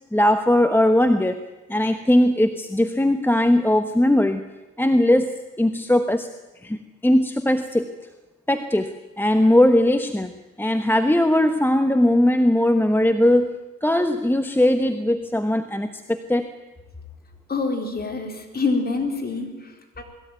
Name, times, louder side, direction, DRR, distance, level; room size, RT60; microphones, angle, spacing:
voice 1, 0.1-4.4 4.8-6.3 6.6-7.9 8.5-10.3 10.6-16.5, left 1 dB, 5° left, 8 dB, 1.2 m, -19 dB
voice 2, 17.5-20.0, left 3 dB, 30° left, 3 dB, 4.4 m, -26 dB
21.5 x 15.5 x 9.3 m, 1.2 s
cardioid pair, 90°, 30 cm